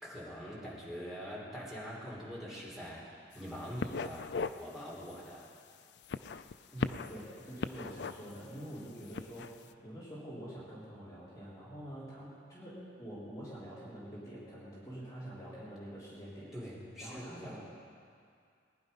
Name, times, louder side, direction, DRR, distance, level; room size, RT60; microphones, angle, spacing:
voice 1, 0.0-4.3 4.5-5.5 16.5-17.6, equal, ahead, -6 dB, 3.2 m, -44 dB
sound 1, 3.3-3.5 3.8-4.6 5.0-5.2 6.0-7.2 7.6-8.4 9.0-9.5, left 4 dB, 65° left, 0.4 m, -37 dB
voice 2, 6.7-16.5 17.0-17.6, right 1 dB, 20° left, -10 dB, 3.7 m, -46 dB
20.0 x 10.5 x 5.4 m, 2.3 s
head